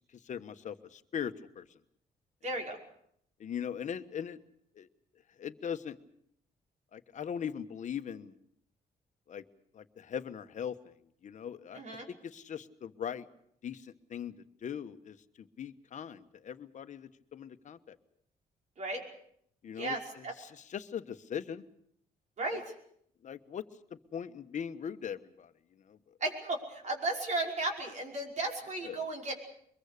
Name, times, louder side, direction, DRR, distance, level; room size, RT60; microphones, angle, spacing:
voice 1, 0.2-1.6 3.4-4.4 4.8-4.9 5.4-6.0 6.9-8.3 9.3-9.4 9.7-10.9 11.2-11.8 12.1-13.3 13.6-14.3 14.6-17.9 19.6-21.6 22.5-22.6 23.2-23.6 23.9-25.5 25.9-26.0 28.8-29.1, left 8 dB, 50° left, 10 dB, 1.3 m, -40 dB
voice 2, 2.4-2.8 11.7-12.1 18.8-19.0 19.8-20.3 22.4-22.6 26.2-29.3, right 2 dB, 50° right, 1 dB, 5.6 m, -35 dB
23.5 x 22.0 x 6.7 m, 0.69 s
cardioid pair, 120°, 16 cm